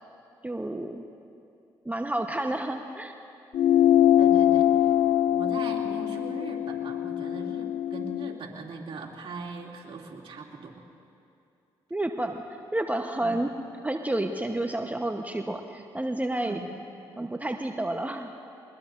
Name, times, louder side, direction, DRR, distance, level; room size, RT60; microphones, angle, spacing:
voice 1, 0.4-1.0 1.8-3.1 11.9-12.4 12.7-13.5 13.8-16.6 17.2-18.3, right 1 dB, 15° right, 4 dB, 1.0 m, -30 dB
sound 1, 3.5-8.4, left 11 dB, 65° left, 0.4 m, -23 dB
voice 2, 4.2-4.9 5.2-10.9 13.2-13.4 16.4-16.6, right 3 dB, 50° right, -2 dB, 2.6 m, -40 dB
22.0 x 21.0 x 2.6 m, 2.6 s
hypercardioid pair, 45°, 11 cm